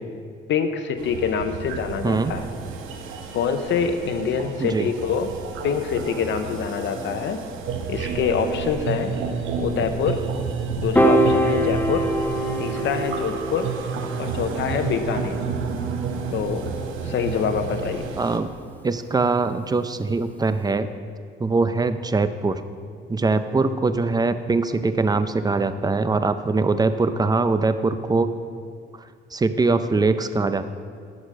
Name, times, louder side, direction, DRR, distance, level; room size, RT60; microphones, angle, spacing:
voice 1, 0.5-2.5 3.3-5.3 5.6-7.4 7.9-9.1 9.6-10.2 10.8-12.1 12.6-13.7 14.2-15.4 16.3-16.7 17.0-18.1, left 6 dB, 70° left, 8 dB, 0.7 m, -25 dB
sound 1, 1.0-18.4, right 5 dB, 85° right, 0.9 m, -31 dB
voice 2, 4.6-4.9 18.2-18.5 18.8-20.9 21.4-22.6 23.1-28.3 29.3-30.7, right 3 dB, 20° right, 11 dB, 0.5 m, -22 dB
Piano, 11.0-17.3, equal, 10° left, 0.9 m, -25 dB
11.5 x 4.9 x 6.6 m, 2.1 s
cardioid pair, 90°, 20 cm